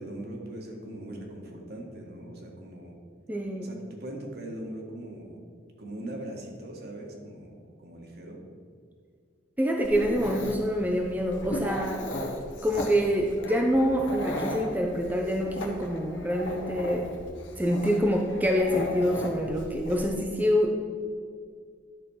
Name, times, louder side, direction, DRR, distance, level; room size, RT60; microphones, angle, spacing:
voice 1, 0.0-3.0 3.6-5.4 5.8-8.4, right 1 dB, 55° right, 0 dB, 1.6 m, -40 dB
voice 2, 3.3-3.7 9.6-12.1 12.6-17.1 17.6-20.8, equal, 10° right, 1 dB, 0.6 m, -26 dB
Dog, 9.8-20.1, left 1 dB, 70° left, 1.3 m, -36 dB
11.0 x 4.3 x 6.4 m, 2.1 s
head